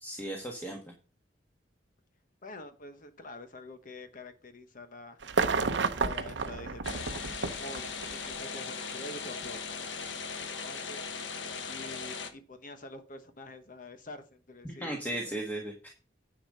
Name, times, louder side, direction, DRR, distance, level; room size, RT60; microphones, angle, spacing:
voice 1, 0.0-0.8 14.7-15.9, right 1 dB, 10° left, 1 dB, 1.5 m, -36 dB
voice 2, 2.4-5.2 5.7-7.9 8.1-9.6 10.5-11.2 11.6-15.4, left 2 dB, 45° left, 8 dB, 1.0 m, -46 dB
sound 1, 5.2-8.3 9.4-9.5, right 4 dB, 75° right, 0.8 m, -31 dB
sound 2, 6.8-12.3, left 5 dB, 80° left, 1.2 m, -38 dB
9.9 x 5.0 x 5.5 m, 0.36 s
head